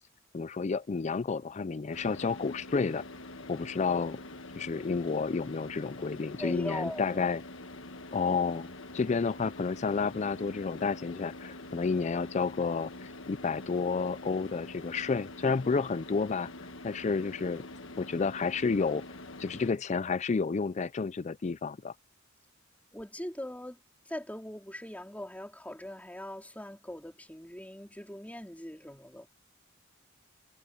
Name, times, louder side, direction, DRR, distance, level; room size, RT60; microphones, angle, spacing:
voice 1, 0.3-3.0 3.5-4.2 4.6-7.4 8.1-16.5 16.8-17.6 18.0-19.0 19.4-21.9, left 4 dB, 35° left, 0.4 m, -30 dB
Car / Idling, 1.9-19.7, left 2 dB, 70° left, 1.5 m, -45 dB
voice 2, 6.4-7.2 22.9-29.3, left 1 dB, 10° left, 4.2 m, -41 dB
head